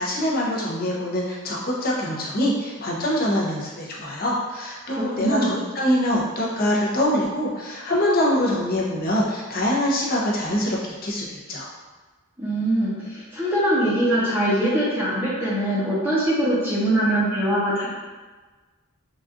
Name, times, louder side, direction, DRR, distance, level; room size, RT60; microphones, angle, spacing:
voice 1, 0.0-11.7, left 1 dB, 40° left, -4 dB, 0.6 m, -24 dB
voice 2, 4.9-5.5 12.4-17.9, right 1 dB, 10° right, -9 dB, 0.7 m, -22 dB
3.9 x 2.3 x 2.5 m, 1.3 s
head